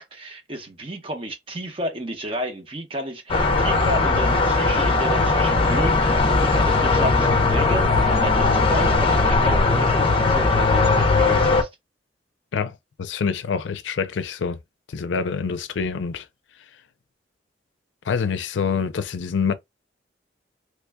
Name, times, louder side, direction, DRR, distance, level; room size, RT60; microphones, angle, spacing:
voice 1, 0.0-11.7, right 1 dB, 30° right, 0.9 m, -32 dB
sound 1, 3.3-11.6, left 3 dB, 30° left, 0.6 m, -19 dB
voice 2, 12.5-14.6 14.9-16.2 18.1-19.6, left 6 dB, 90° left, 0.4 m, -26 dB
3.2 x 2.2 x 3.4 m
head